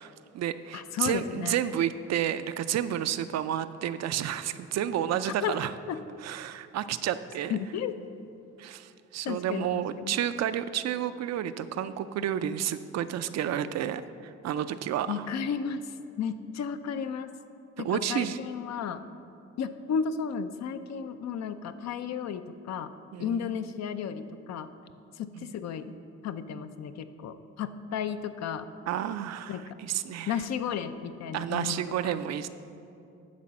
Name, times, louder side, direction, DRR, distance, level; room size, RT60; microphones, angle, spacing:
voice 1, 0.0-5.7 6.2-7.6 8.6-15.3 17.8-18.4 23.1-23.5 25.3-25.5 28.9-30.4 31.3-32.5, right 10 dB, 60° right, 12 dB, 0.4 m, -31 dB
voice 2, 0.7-1.6 5.4-5.5 5.9-6.0 7.5-7.9 9.2-10.1 15.1-15.9 16.2-17.3 17.8-19.0 19.6-22.9 23.2-24.7 25.2-26.0 26.2-28.7 29.5-29.8 30.3-32.2, left 7 dB, 60° left, 10 dB, 0.5 m, -33 dB
10.5 x 4.0 x 7.4 m, 2.6 s
cardioid pair, 90°, 30 cm